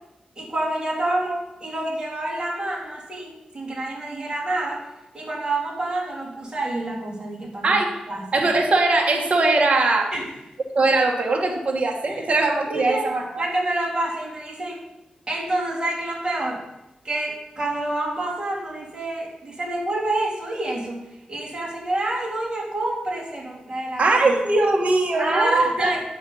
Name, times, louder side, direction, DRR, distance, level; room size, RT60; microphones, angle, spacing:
voice 1, 0.4-4.8 5.1-7.8 8.1-8.4 10.1-10.3 12.1-12.2 12.6-13.1 13.4-14.8 15.3-16.6 17.0-21.0 21.3-24.3 25.1-26.0, right 2 dB, 30° right, -3 dB, 3.4 m, -28 dB
voice 2, 7.6-7.9 8.3-10.1 10.7-13.4 24.0-25.9, right 2 dB, 50° right, 1 dB, 1.6 m, -20 dB
9.4 x 7.3 x 5.5 m, 0.93 s
cardioid pair, 75°, 3 cm